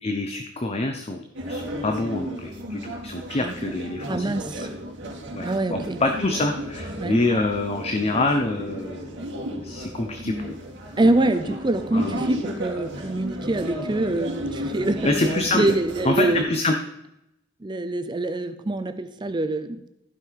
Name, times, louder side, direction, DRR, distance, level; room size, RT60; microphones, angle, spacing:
voice 1, 0.0-4.3 4.6-4.7 5.3-9.1 9.6-10.6 11.0-11.4 11.9-12.3 15.0-15.6 16.0-16.8, left 2 dB, 30° left, 5 dB, 0.7 m, -26 dB
sound 1, 1.3-16.4, equal, 70° right, 2.8 m, -33 dB
voice 2, 4.1-4.7 5.4-6.0 7.0-7.2 11.0-15.1 15.5-16.6 17.6-19.8, right 2 dB, 25° right, 9 dB, 0.5 m, -25 dB
15.0 x 5.4 x 4.7 m, 0.85 s
head